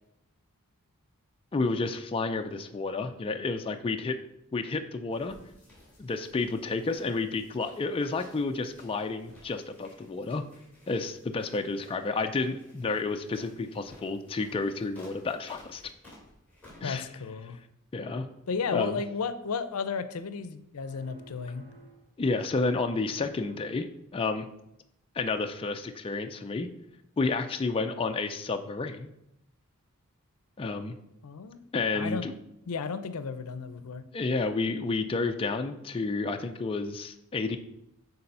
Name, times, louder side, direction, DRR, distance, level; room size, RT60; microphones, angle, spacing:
voice 1, 1.5-4.2 4.5-5.4 6.0-10.4 10.9-15.8 16.8-17.0 17.9-18.3 18.7-19.0 22.2-23.9 24.1-24.5 25.1-26.7 27.2-29.1 30.6-30.9 31.7-32.3 34.1-37.6, left 3 dB, 25° left, 6 dB, 0.3 m, -30 dB
sound 1, 5.1-16.9, left 1 dB, 5° left, 2.8 m, -56 dB
voice 2, 16.8-17.6 18.5-21.6 31.2-31.6 31.9-32.2 32.7-34.0, left 5 dB, 75° left, 12 dB, 0.5 m, -33 dB
sound 2, 20.8-22.2 22.5-24.0, right 3 dB, 50° right, 1.7 m, -55 dB
6.9 x 4.0 x 5.4 m, 0.84 s
head